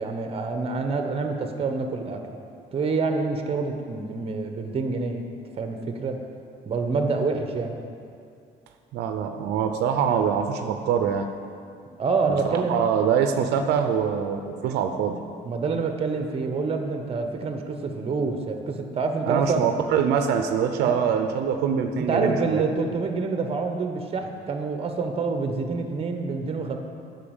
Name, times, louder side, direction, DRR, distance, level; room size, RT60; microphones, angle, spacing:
voice 1, 0.0-2.2 2.7-5.3 5.6-6.2 6.6-7.8 11.9-12.7 15.4-19.6 20.8-21.0 22.0-26.8, right 4 dB, 35° right, 5 dB, 1.0 m, -27 dB
voice 2, 8.9-11.3 12.3-15.2 19.3-22.6, right 7 dB, 85° right, 6 dB, 0.6 m, -24 dB
8.5 x 5.8 x 7.1 m, 2.4 s
cardioid pair, 110°, 17 cm